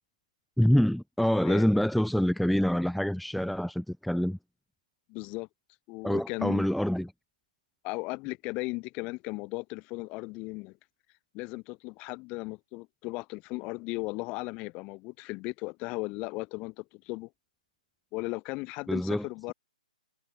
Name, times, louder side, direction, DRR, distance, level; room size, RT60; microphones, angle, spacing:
voice 1, 0.6-4.4 6.0-7.1 18.9-19.3, equal, ahead, 1.1 m, -26 dB
voice 2, 5.1-5.5 5.9-6.7 7.8-10.8 11.3-17.3 18.1-19.5, left 25 dB, 25° left, 1.8 m, -36 dB
hypercardioid pair, 145°, 4 cm